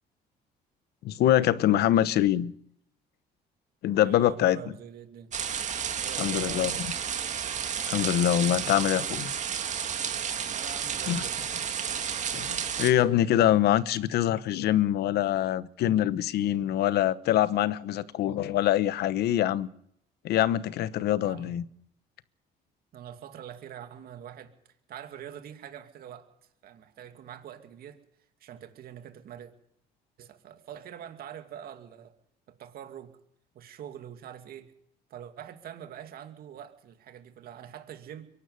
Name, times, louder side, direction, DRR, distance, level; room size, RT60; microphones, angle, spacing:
voice 1, 1.0-2.5 3.8-4.6 6.2-6.7 7.9-9.3 11.1-11.2 12.3-19.7 20.2-21.6, left 12 dB, 70° left, 1.1 m, -24 dB
voice 2, 4.0-5.3 6.0-6.8 10.5-11.4 21.2-21.6 22.9-24.5 24.9-26.3 26.6-28.0 28.4-29.5 30.2-32.1 32.5-33.2 33.5-34.7 35.1-38.3, right 9 dB, 65° right, 2.5 m, -44 dB
sound 1, 5.3-12.9, right 8 dB, 45° right, 1.9 m, -32 dB
23.5 x 12.0 x 9.6 m
cardioid pair, 110°, 17 cm